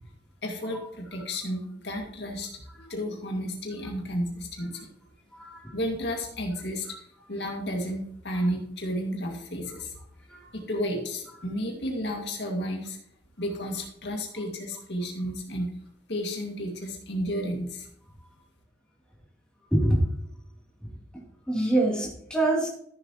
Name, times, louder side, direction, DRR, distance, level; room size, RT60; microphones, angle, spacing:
voice 1, 0.4-2.6 2.9-4.9 5.7-6.9 7.3-9.9 10.5-13.0 13.4-15.7 16.1-17.9, equal, 65° left, 1 dB, 2.1 m, -32 dB
voice 2, 5.3-5.8 8.3-8.5 10.3-10.5 19.7-20.1 20.8-20.9 21.5-22.7, right 1 dB, 5° left, -4 dB, 2.9 m, -26 dB
14.0 x 7.4 x 3.0 m, 0.70 s
head